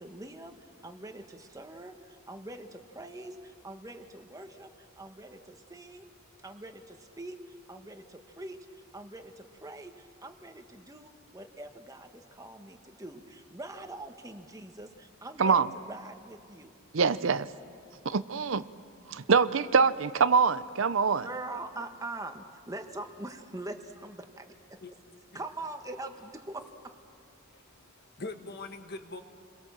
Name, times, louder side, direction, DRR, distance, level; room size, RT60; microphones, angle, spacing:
voice 1, 0.0-6.1 6.4-16.7 21.2-24.8 25.3-26.9, right 2 dB, 15° right, 1.3 m, -43 dB
voice 2, 16.9-17.5 18.0-18.6 19.1-21.3, right 5 dB, 65° right, 0.6 m, -24 dB
voice 3, 27.5-29.2, left 3 dB, 50° left, 1.5 m, -43 dB
29.5 x 22.5 x 7.3 m
head